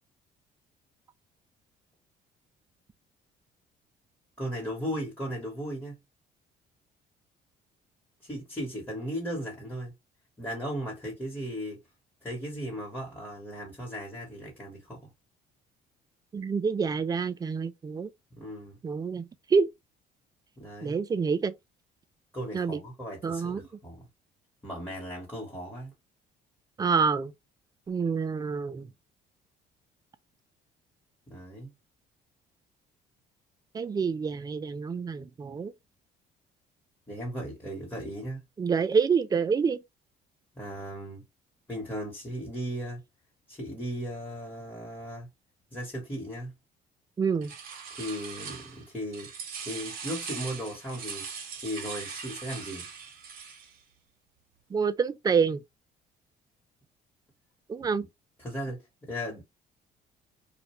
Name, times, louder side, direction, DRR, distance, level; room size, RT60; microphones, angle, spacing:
voice 1, 4.4-6.0 8.2-9.9 10.4-11.8 12.2-15.1 18.4-18.8 20.6-21.0 22.3-24.1 24.6-25.9 31.3-31.7 37.1-38.4 40.5-41.3 41.7-43.0 43.5-45.3 45.7-46.5 48.0-49.3 49.6-51.3 51.6-52.9 57.8-57.9 58.4-58.8 59.1-59.4, equal, 10° left, 1.1 m, -36 dB
voice 2, 16.3-18.1 18.8-19.7 20.8-21.5 22.5-22.8 23.2-23.6 26.8-27.3 27.9-28.9 33.7-35.7 38.6-39.8 47.2-47.5 54.7-55.6 57.7-58.1, right 5 dB, 25° right, 0.3 m, -27 dB
sound 1, 47.4-48.9 49.1-53.8, right 6 dB, 60° right, 0.8 m, -40 dB
2.5 x 2.1 x 3.0 m
cardioid pair, 110°, 17 cm